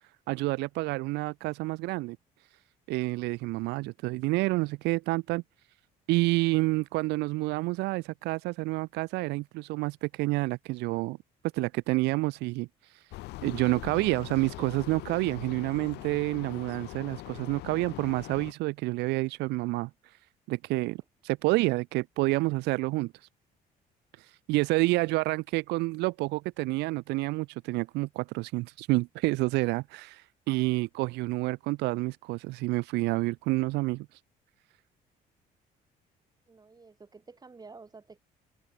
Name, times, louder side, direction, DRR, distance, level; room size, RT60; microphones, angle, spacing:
voice 1, 0.3-2.2 2.9-5.4 6.1-11.2 11.5-12.7 13.4-19.9 20.5-23.1 24.5-34.1, right 22 dB, 85° right, 0.5 m, -29 dB
sound 1, 13.1-18.5, left 19 dB, 85° left, 0.8 m, -42 dB
voice 2, 36.5-38.2, right 4 dB, 25° right, 3.8 m, -50 dB
open air
cardioid pair, 110°, 17 cm